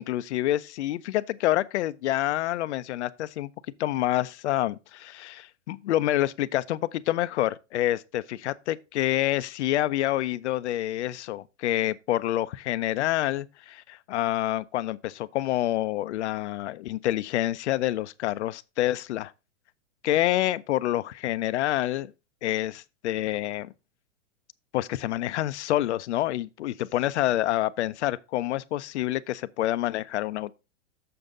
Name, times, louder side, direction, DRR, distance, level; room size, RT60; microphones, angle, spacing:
voice 1, 0.0-3.5 3.8-19.3 20.0-22.1 22.4-23.7 24.7-30.5, left 14 dB, 65° left, 0.7 m, -27 dB
6.9 x 6.8 x 3.7 m
hypercardioid pair, 130°, 37 cm